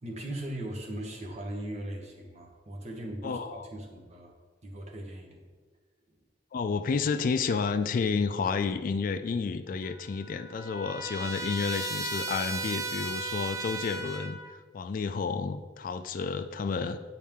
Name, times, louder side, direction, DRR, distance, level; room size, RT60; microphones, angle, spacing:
voice 1, 0.0-4.3 4.6-5.4, right 1 dB, 40° right, 0 dB, 1.1 m, -39 dB
voice 2, 3.2-3.7 6.5-14.4 14.7-17.0, left 5 dB, 50° left, 9 dB, 0.3 m, -30 dB
Trumpet, 9.8-14.6, right 2 dB, 20° right, 0.4 m, -36 dB
8.9 x 4.2 x 3.6 m, 1.4 s
head